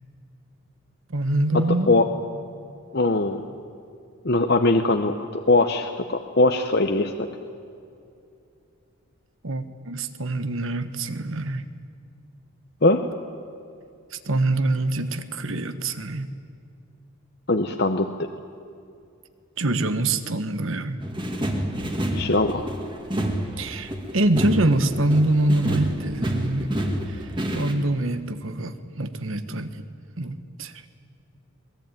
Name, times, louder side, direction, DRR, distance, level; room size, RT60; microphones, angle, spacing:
voice 1, 1.1-1.9 9.4-11.6 14.1-16.3 19.6-21.0 23.6-26.7 27.1-29.8 30.2-30.7, right 2 dB, 70° right, 11 dB, 1.3 m, -25 dB
voice 2, 2.9-3.4 4.2-7.3 12.8-13.0 17.5-18.3 22.1-22.6, left 2 dB, 50° left, 6 dB, 0.9 m, -21 dB
sound 1, 21.0-27.7, right 1 dB, 20° right, 2.1 m, -28 dB
22.5 x 20.0 x 9.1 m, 2.5 s
head